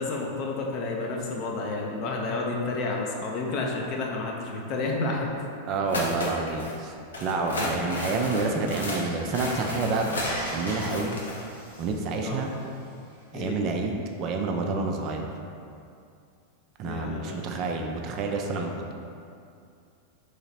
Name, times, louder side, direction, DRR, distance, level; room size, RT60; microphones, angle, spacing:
voice 1, 0.0-5.4 5.9-6.1 7.5-7.8 12.2-12.4 13.3-13.6 16.8-17.5, left 3 dB, 40° left, 0 dB, 0.6 m, -31 dB
voice 2, 5.7-6.9 7.2-11.2 11.8-12.5 13.3-15.3 16.8-18.9, right 3 dB, 40° right, 2 dB, 0.4 m, -28 dB
sound 1, 5.9-6.7 7.1-11.4, left 1 dB, 70° left, 0.8 m, -33 dB
Water, 8.0-13.4, equal, 90° left, 1.5 m, -41 dB
3.9 x 3.2 x 4.1 m, 2.5 s
figure-of-eight pair, 90°, 0 cm